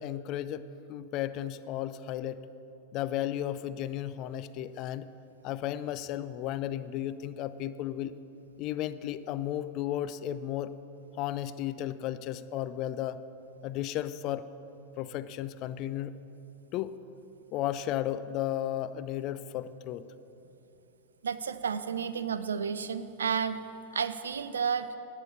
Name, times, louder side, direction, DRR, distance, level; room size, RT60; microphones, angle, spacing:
voice 1, 0.0-2.4 2.9-5.1 5.4-8.1 8.6-10.7 11.2-13.2 13.6-14.5 15.0-16.2 16.7-17.0 17.5-20.0, left 12 dB, 40° left, 14 dB, 0.4 m, -34 dB
voice 2, 21.2-23.6 23.9-24.9, right 6 dB, 70° right, 12 dB, 0.4 m, -31 dB
11.5 x 6.8 x 7.3 m, 2.9 s
figure-of-eight pair, 90°, 0 cm